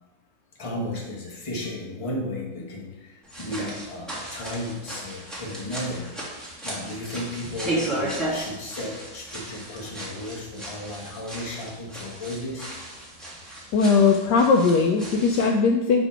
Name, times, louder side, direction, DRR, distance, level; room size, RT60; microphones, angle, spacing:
voice 1, 0.5-6.1 6.6-12.7, left 1 dB, 20° left, -3 dB, 0.9 m, -34 dB
sound 1, 3.2-15.5, right 1 dB, ahead, 1.5 m, -35 dB
voice 2, 13.7-16.1, left 4 dB, 85° left, 3 dB, 0.9 m, -19 dB
6.2 x 3.9 x 5.7 m, 1.0 s
omnidirectional pair, 2.4 m